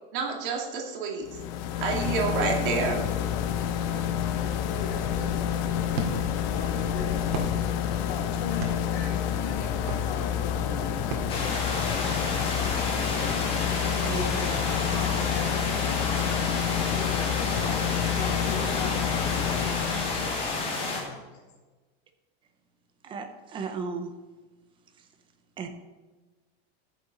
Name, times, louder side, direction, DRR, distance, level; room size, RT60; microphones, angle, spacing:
voice 1, 0.1-1.3 1.8-3.0, right 4 dB, 60° right, 0 dB, 2.2 m, -28 dB
sound 1, 1.2-20.6, left 9 dB, 50° left, 0.8 m, -29 dB
voice 2, 4.6-5.7 6.5-7.4 8.1-11.1 14.1-17.3 17.7-20.5 21.0-21.4, left 5 dB, 90° left, -2 dB, 3.4 m, -40 dB
sound 2, 5.9-12.2, right 4 dB, 80° right, 2.2 m, -39 dB
sound 3, 11.3-21.0, left 3 dB, 20° left, 1.9 m, -30 dB
voice 3, 14.0-14.4 23.0-24.1 25.6-25.7, right 4 dB, 15° right, 6 dB, 0.7 m, -34 dB
14.5 x 6.9 x 3.9 m, 1.3 s
supercardioid pair, 175°, 30 cm